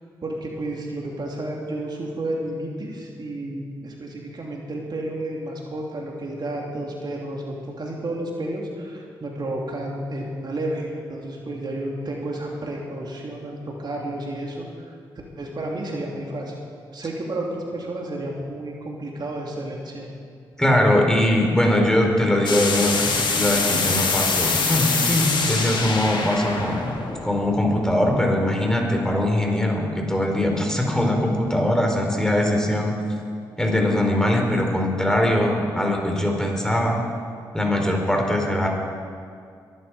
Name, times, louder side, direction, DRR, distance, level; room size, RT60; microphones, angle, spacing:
voice 1, 0.2-14.9 15.4-16.6 16.9-20.1, right 1 dB, 50° right, -1 dB, 2.9 m, -31 dB
voice 2, 20.6-26.9 27.2-32.9 33.6-37.0 37.5-38.7, left 1 dB, 5° left, 1 dB, 4.6 m, -21 dB
sound 1, 22.4-28.1, left 4 dB, 55° left, 2.5 m, -25 dB
22.0 x 12.5 x 5.0 m, 2.2 s
hypercardioid pair, 40°, 10 cm